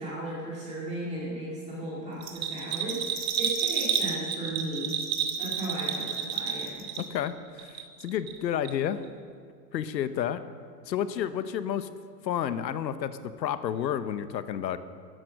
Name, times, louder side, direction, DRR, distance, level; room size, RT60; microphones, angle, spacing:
voice 1, 0.0-4.9 5.4-6.9, right 1 dB, 15° right, -7 dB, 2.2 m, -36 dB
Bell, 2.2-7.3 7.6-8.4 8.7-8.8, right 7 dB, 80° right, 2.1 m, -30 dB
voice 2, 7.0-9.0 9.7-10.4 10.9-11.9 12.2-14.8, left 9 dB, 90° left, 12 dB, 1.0 m, -31 dB
13.0 x 10.5 x 6.5 m, 2.2 s
hypercardioid pair, 160°, 50 cm